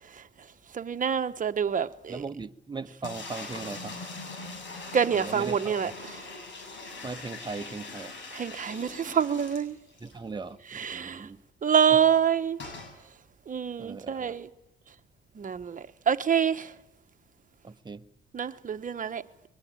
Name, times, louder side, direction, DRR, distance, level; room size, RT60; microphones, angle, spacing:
voice 1, 0.7-2.2 4.9-6.1 8.3-9.8 10.7-11.3 11.6-12.6 13.5-14.5 15.4-16.7 18.3-19.2, right 7 dB, 40° right, 1.2 m, -26 dB
voice 2, 2.1-4.0 5.1-5.9 7.0-8.1 10.0-11.4 11.9-12.0 13.8-14.3 17.6-18.0, right 4 dB, 20° right, 1.1 m, -39 dB
sound 1, 3.0-10.2 10.5-10.6 10.8-10.9 12.6-12.9, left 3 dB, 70° left, 7.4 m, -41 dB
22.0 x 21.5 x 9.2 m
cardioid pair, 90°, 20 cm